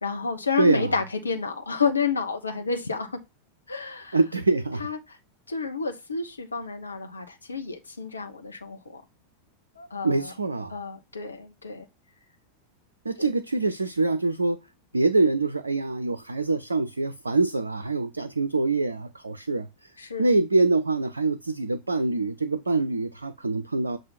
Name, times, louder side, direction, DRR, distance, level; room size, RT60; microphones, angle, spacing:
voice 1, 0.0-3.2 3.7-4.2 4.8-5.2 5.5-9.0 9.8-10.3 10.7-11.9 13.2-13.3 20.0-20.3, left 5 dB, 75° left, 1.0 m, -30 dB
voice 2, 0.6-0.9 4.1-4.9 10.0-10.7 13.1-14.6 14.9-19.7 20.2-24.0, right 3 dB, 80° right, 0.4 m, -24 dB
7.3 x 2.7 x 5.6 m
figure-of-eight pair, 90°, 0 cm